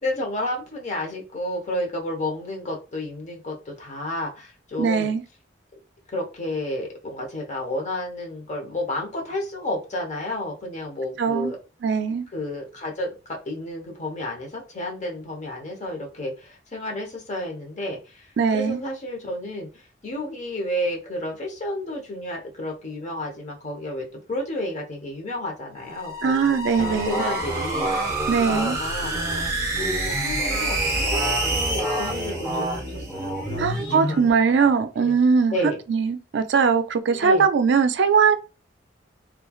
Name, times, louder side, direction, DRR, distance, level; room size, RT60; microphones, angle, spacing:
voice 1, 0.0-5.1 6.1-11.6 12.3-18.3 18.5-29.1 29.7-34.3 35.0-35.2 35.5-35.8 37.1-37.5, left 1 dB, 40° left, 0.8 m, -31 dB
voice 2, 4.8-5.2 11.2-11.5 11.8-12.3 18.4-18.8 26.2-27.2 28.3-28.8 33.6-35.5 35.9-38.4, right 5 dB, 70° right, 0.4 m, -20 dB
sound 1, 25.8-33.3, right 2 dB, 20° right, 0.8 m, -28 dB
sound 2, 26.8-34.3, right 1 dB, 10° left, 1.0 m, -30 dB
3.1 x 2.3 x 2.3 m
head